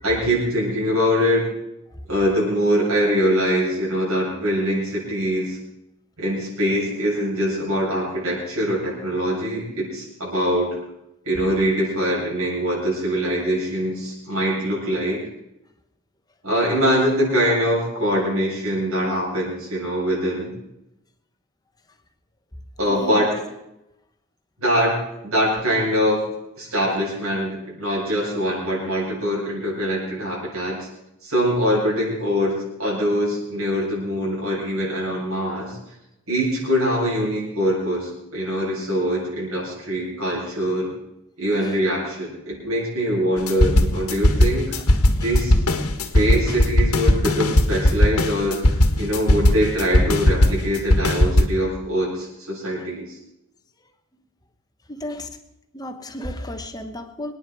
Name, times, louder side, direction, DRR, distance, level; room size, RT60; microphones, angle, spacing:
voice 1, 0.0-1.5 2.1-5.6 6.2-10.8 11.2-15.3 16.4-20.5 22.8-23.4 24.6-26.3 26.6-30.9 31.2-35.8 36.3-40.9 41.4-44.8 45.2-45.5 46.1-53.2, equal, 70° right, -5 dB, 7.7 m, -23 dB
voice 2, 22.9-23.3 41.5-41.8 45.2-45.4 46.5-46.6 54.9-55.4 55.7-57.4, left 1 dB, 15° left, 7 dB, 1.2 m, -34 dB
sound 1, 43.4-51.4, left 1 dB, 85° left, 1.7 m, -18 dB
26.0 x 9.7 x 4.8 m, 0.86 s
head